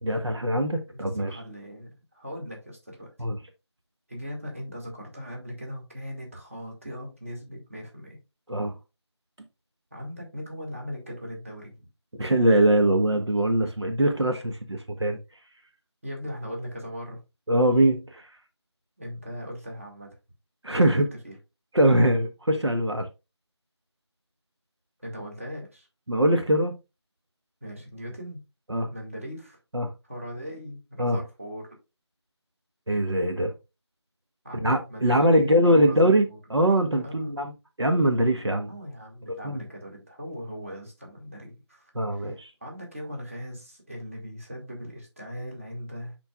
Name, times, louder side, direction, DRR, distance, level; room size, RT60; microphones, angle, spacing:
voice 1, 0.0-1.4 3.2-3.4 8.5-8.8 12.2-15.2 17.5-18.3 20.6-21.1 21.7-23.1 26.1-26.8 28.7-28.9 29.7-29.9 31.0-31.2 32.9-33.5 34.6-37.5 37.8-38.7 39.4-39.6 41.9-42.5, right 1 dB, 70° right, 1.3 m, -22 dB
voice 2, 0.9-3.1 4.1-8.2 9.9-11.7 16.0-17.2 19.0-20.2 20.7-21.4 25.0-25.9 27.6-28.4 28.9-29.6 30.1-31.8 34.4-36.4 37.0-37.5 38.7-46.2, equal, 30° right, 2.2 m, -39 dB
10.5 x 4.5 x 2.4 m
figure-of-eight pair, 175°, 15 cm